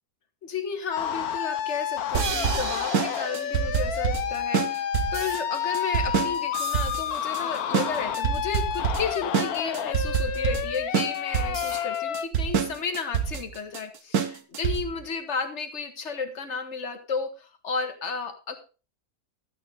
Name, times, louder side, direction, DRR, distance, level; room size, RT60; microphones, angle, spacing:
voice 1, 0.4-18.6, left 5 dB, 50° left, 7 dB, 1.9 m, -33 dB
sound 1, 0.9-12.3, left 9 dB, 80° left, 1.3 m, -30 dB
sound 2, 2.1-15.0, right 8 dB, 80° right, 1.5 m, -27 dB
14.0 x 8.7 x 4.0 m, 0.33 s
omnidirectional pair, 1.6 m